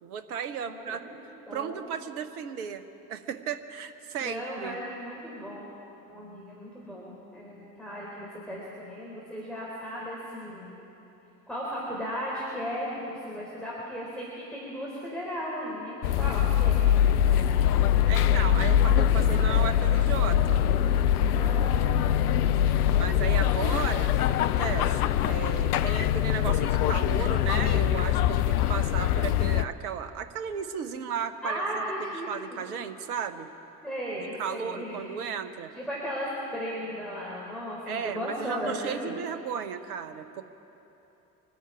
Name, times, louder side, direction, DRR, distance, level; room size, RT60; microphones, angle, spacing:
voice 1, 0.0-1.0 1.5-2.8 3.1-4.8 18.1-20.6 23.0-33.5 34.4-35.7 37.9-40.4, right 7 dB, 75° right, 10 dB, 1.1 m, -35 dB
voice 2, 0.6-1.1 1.5-1.9 4.2-5.7 6.1-10.7 11.5-17.5 21.3-22.4 31.4-32.6 33.8-35.0 35.7-39.1, equal, ahead, -7 dB, 4.4 m, -36 dB
sound 1, 16.0-29.6, left 10 dB, 80° left, 0.6 m, -23 dB
25.5 x 10.0 x 4.8 m, 3.0 s
figure-of-eight pair, 55°, 46 cm